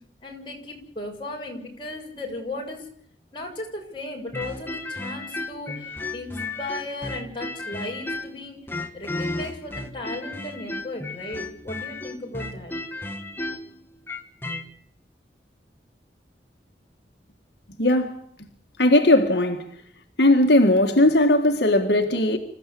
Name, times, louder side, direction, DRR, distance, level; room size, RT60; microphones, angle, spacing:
voice 1, 0.2-2.8 3.3-8.6 8.9-12.7, left 2 dB, 30° left, 6.7 m, -36 dB
sound 1, 4.3-8.4 8.7-14.6, left 2 dB, 10° left, 1.8 m, -33 dB
voice 2, 17.8-18.5 18.8-19.7 20.2-22.4, left 1 dB, 75° left, 1.9 m, -18 dB
27.0 x 15.0 x 8.6 m
head